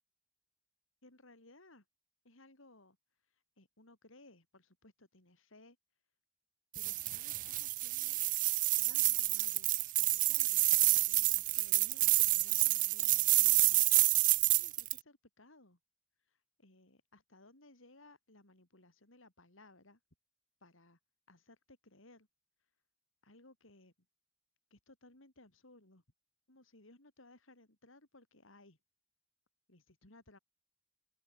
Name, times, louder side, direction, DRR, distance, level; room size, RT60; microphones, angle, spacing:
voice 1, 1.0-1.8 2.2-3.0 3.3-5.8 6.7-8.2 8.8-14.2 14.5-15.8 16.3-20.0 20.6-21.0 21.3-22.3 23.2-23.9 24.7-26.0 26.5-28.8 29.7-30.4, left 2 dB, 70° left, 4.1 m, -61 dB
sound 1, 6.8-15.0, right 18 dB, 40° right, 0.3 m, -29 dB
open air
head